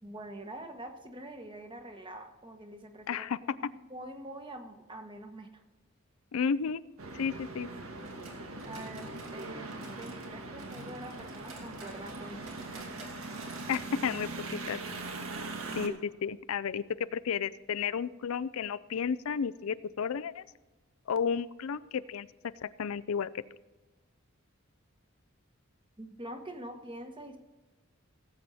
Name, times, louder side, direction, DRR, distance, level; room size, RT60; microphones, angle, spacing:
voice 1, 0.0-3.3 3.7-5.6 8.6-12.9 15.8-16.0 26.0-27.4, right 1 dB, 25° right, 5 dB, 1.3 m, -45 dB
voice 2, 3.1-3.4 6.3-6.8 7.1-7.7 13.7-14.8 15.8-15.9 16.2-20.4 21.1-22.3 22.6-23.4, left 6 dB, 85° left, 16 dB, 0.4 m, -32 dB
sound 1, 7.0-15.9, right 2 dB, 85° right, 1.5 m, -41 dB
sound 2, 8.0-10.3 10.6-13.9 14.2-14.3 14.7-14.8 15.3-15.4, right 3 dB, 70° right, 2.7 m, -51 dB
18.0 x 7.8 x 4.2 m, 1.2 s
head